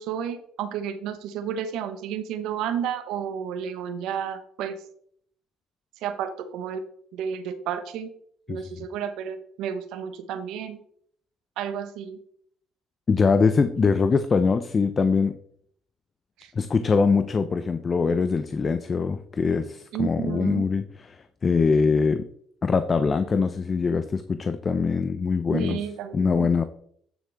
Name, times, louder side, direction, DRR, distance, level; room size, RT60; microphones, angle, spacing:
voice 1, 0.0-4.8 6.0-6.8 7.1-8.1 8.5-10.8 11.6-12.2 16.4-16.5 19.9-20.7 25.5-26.5, right 8 dB, 75° right, 10 dB, 1.0 m, -31 dB
voice 2, 8.5-8.8 13.1-15.4 16.5-22.3 22.6-25.8 26.1-26.6, left 5 dB, 35° left, 11 dB, 0.6 m, -23 dB
9.3 x 6.6 x 3.5 m, 0.64 s
supercardioid pair, 65°, 0 cm